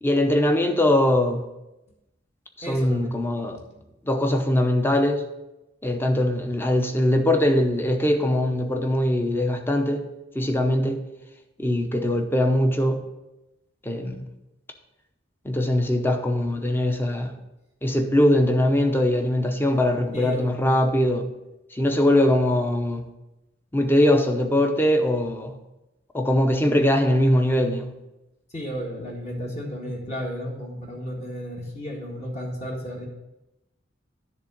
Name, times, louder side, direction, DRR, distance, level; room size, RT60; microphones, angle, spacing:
voice 1, 0.0-1.5 2.6-3.6 4.0-5.2 5.8-10.1 10.3-11.0 11.6-13.0 13.8-14.3 15.4-17.3 17.8-21.3 21.7-23.1 23.7-25.6 26.1-27.9, left 1 dB, 10° left, 5 dB, 0.7 m, -21 dB
voice 2, 2.6-3.2 3.7-3.8 20.1-20.8 28.5-33.1, equal, 35° left, -2 dB, 1.6 m, -33 dB
10.5 x 3.6 x 6.7 m, 0.96 s
head